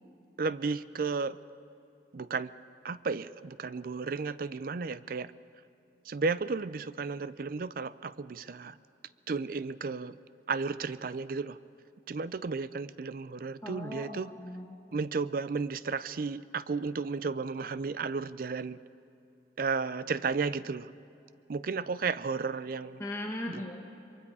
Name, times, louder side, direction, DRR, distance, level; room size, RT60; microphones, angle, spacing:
voice 1, 0.4-1.4 2.1-2.5 2.8-5.3 6.1-8.7 9.3-10.1 10.5-11.6 12.1-14.3 14.9-18.8 19.6-20.9 21.5-23.0 23.5-23.6, right 4 dB, 55° right, 16 dB, 0.5 m, -33 dB
voice 2, 13.6-14.8 23.0-23.8, left 1 dB, 15° left, -1 dB, 1.3 m, -38 dB
23.5 x 23.0 x 4.8 m, 2.8 s
head